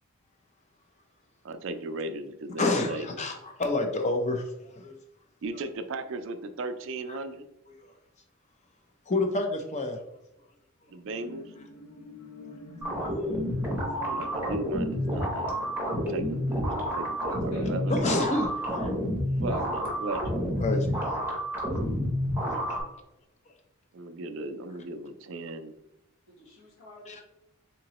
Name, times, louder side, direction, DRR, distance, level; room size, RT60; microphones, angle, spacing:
voice 1, 1.4-3.2 5.4-7.4 10.9-11.5 14.0-15.6 15.8-18.3 19.4-20.4 23.9-25.8, right 2 dB, 55° right, 9 dB, 0.3 m, -37 dB
voice 2, 2.6-4.9 9.1-10.0 13.0-13.5 17.9-18.9 20.6-20.9 27.1-27.2, left 2 dB, 30° left, 3 dB, 0.5 m, -29 dB
sound 1, 10.9-18.7 19.2-19.3, equal, 90° left, 0.6 m, -47 dB
sound 2, 12.8-22.8, equal, 10° right, 0.7 m, -29 dB
voice 3, 17.5-18.6 19.4-19.6 19.8-20.1 26.3-27.2, left 1 dB, 60° left, -3 dB, 1.3 m, -50 dB
3.8 x 2.9 x 2.9 m, 0.88 s
head